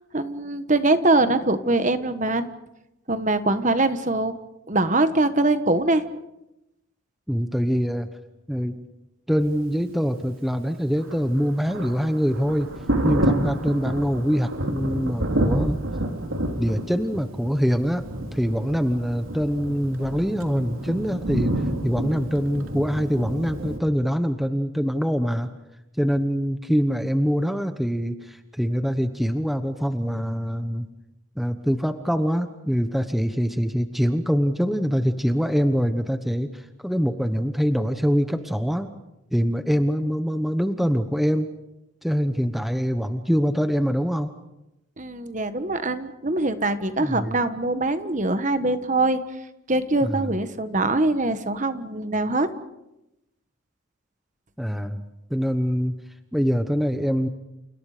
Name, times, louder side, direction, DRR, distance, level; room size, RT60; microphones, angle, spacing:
voice 1, 0.1-2.5 3.1-4.3 4.7-6.0 45.0-49.2 49.7-52.5, right 2 dB, 35° right, 10 dB, 1.3 m, -23 dB
voice 2, 7.3-8.1 8.5-8.8 9.3-12.7 13.0-15.8 16.6-21.5 21.8-25.5 26.0-30.9 31.4-38.9 39.3-41.5 42.0-44.3 47.0-47.4 50.0-50.3 54.6-56.0 56.3-57.3, equal, ahead, 8 dB, 1.0 m, -24 dB
Thunder, 11.0-23.8, right 1 dB, 80° right, 3.0 m, -28 dB
30.0 x 29.5 x 5.0 m, 0.90 s
head